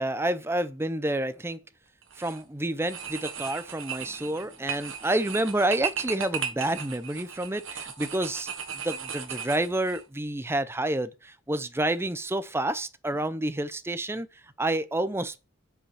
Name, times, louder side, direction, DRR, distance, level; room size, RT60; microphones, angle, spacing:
voice 1, 0.0-1.6 2.2-8.5 8.8-14.3 14.6-15.5, right 1 dB, 10° right, 0.6 m, -29 dB
sound 1, 2.0-2.4 2.8-10.0, right 8 dB, 70° right, 1.5 m, -36 dB
6.8 x 5.8 x 7.1 m
head